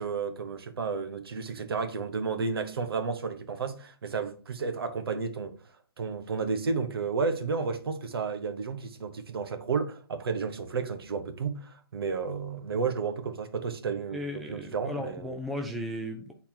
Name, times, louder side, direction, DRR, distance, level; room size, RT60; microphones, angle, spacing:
voice 1, 0.0-5.5 6.0-15.3, right 5 dB, 65° right, 1.2 m, -32 dB
voice 2, 14.1-16.3, left 1 dB, ahead, 0.3 m, -35 dB
8.5 x 4.2 x 2.8 m
hypercardioid pair, 155°, 13 cm